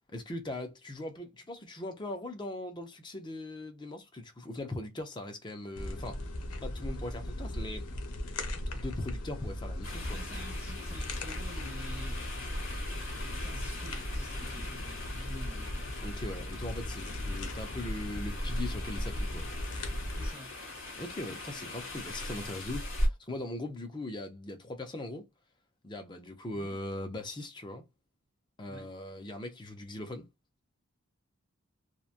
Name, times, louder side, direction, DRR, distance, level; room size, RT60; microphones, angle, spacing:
voice 1, 0.1-6.2 6.6-7.9 8.7-10.2 16.0-19.4 21.0-25.3 25.8-27.8 28.6-30.3, left 1 dB, 20° left, 0.5 m, -40 dB
sound 1, 5.7-20.3, left 1 dB, 90° left, 0.7 m, -37 dB
sound 2, 9.8-23.1, left 1 dB, 60° left, 1.3 m, -40 dB
voice 2, 10.1-12.2 13.0-15.7 20.1-20.5 28.7-28.9, equal, 5° right, 1.2 m, -48 dB
2.9 x 2.2 x 2.4 m
head